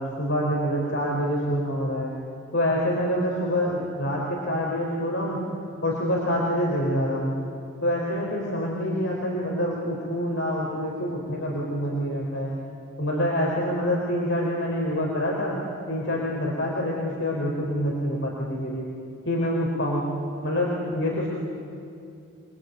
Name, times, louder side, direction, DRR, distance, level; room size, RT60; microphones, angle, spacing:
voice 1, 0.0-2.1 2.5-5.4 5.8-7.3 7.8-12.5 13.0-15.6 15.9-18.8 19.2-20.1 20.4-21.3, equal, 65° left, -3 dB, 4.4 m, -26 dB
28.5 x 21.5 x 9.4 m, 2.5 s
head